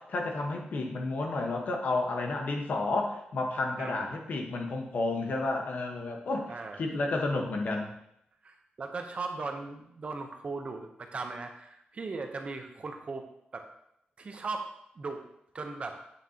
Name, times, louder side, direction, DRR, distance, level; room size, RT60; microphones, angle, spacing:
voice 1, 0.0-6.5 6.8-7.9, left 2 dB, 55° left, 2 dB, 1.2 m, -31 dB
voice 2, 3.8-4.1 6.5-6.8 8.4-13.2 13.5-13.7 14.2-14.7 15.0-15.3 15.5-16.0, right 3 dB, 40° right, 5 dB, 0.8 m, -38 dB
8.3 x 6.5 x 2.8 m, 0.78 s
wide cardioid pair, 155°, 3 cm